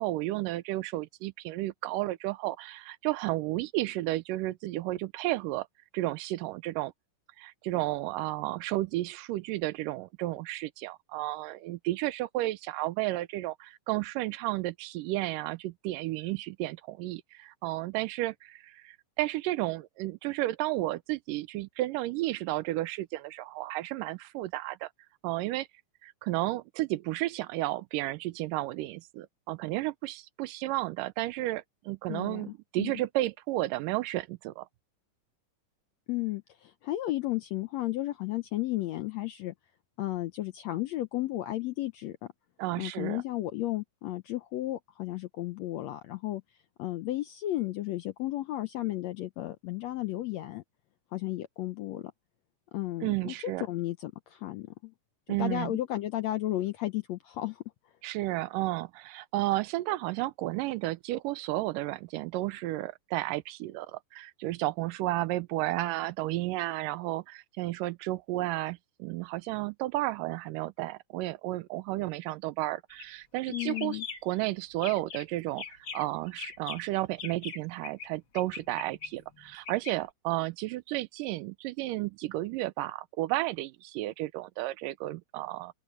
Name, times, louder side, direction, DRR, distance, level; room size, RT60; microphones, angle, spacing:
voice 1, 0.0-5.7 5.9-6.9 7.4-24.9 25.2-25.7 26.0-34.7 42.6-43.2 53.0-53.7 55.3-55.8 58.0-85.7, right 17 dB, 80° right, 2.2 m, -32 dB
voice 2, 32.1-32.9 36.1-39.5 40.0-42.3 42.8-46.4 46.8-50.6 51.1-52.1 52.7-54.9 55.3-57.6 73.5-74.1, left 15 dB, 80° left, 1.6 m, -33 dB
sound 1, 72.9-73.2 73.5-74.4 74.7-75.3 75.6-78.1 78.3-79.9, left 5 dB, 40° left, 2.4 m, -41 dB
open air
omnidirectional pair, 3.9 m